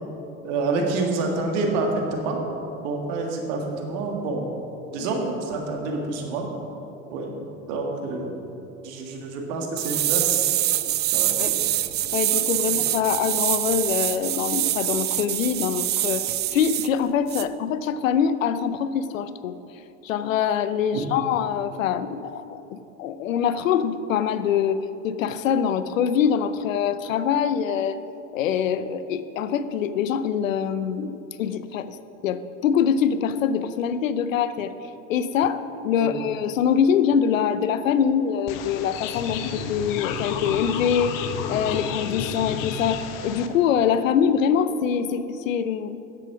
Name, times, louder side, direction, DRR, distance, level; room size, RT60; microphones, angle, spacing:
voice 1, 0.4-2.4 2.8-4.5 4.9-6.5 7.1-7.4 7.7-8.4 8.8-10.5 11.1-11.6 12.6-12.8 20.9-21.0 36.0-36.2, right 3 dB, 65° right, 2 dB, 1.9 m, -28 dB
sound 1, 9.8-16.9 17.3-17.4, right 13 dB, 30° right, 0.4 m, -25 dB
voice 2, 12.1-16.2 16.5-19.5 20.0-28.0 28.3-32.0 32.2-34.7 35.1-41.1 41.5-46.0, left 8 dB, 85° left, 13 dB, 0.6 m, -24 dB
sound 2, 38.5-43.5, left 6 dB, 55° left, 1.0 m, -31 dB
9.7 x 7.8 x 6.0 m, 2.9 s
hypercardioid pair, 80°, 38 cm